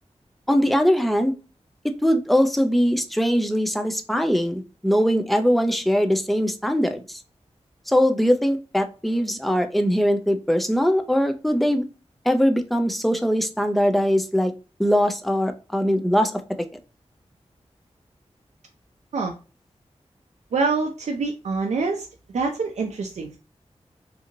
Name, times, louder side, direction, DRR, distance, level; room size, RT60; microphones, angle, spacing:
voice 1, 0.5-1.3 2.0-7.2 7.9-11.8 12.3-14.5 14.8-16.4, equal, ahead, 6 dB, 0.4 m, -21 dB
voice 2, 20.5-22.1 22.3-23.4, right 4 dB, 80° right, 2 dB, 0.4 m, -25 dB
2.8 x 2.6 x 2.5 m, 0.34 s
wide cardioid pair, 85°, 12 cm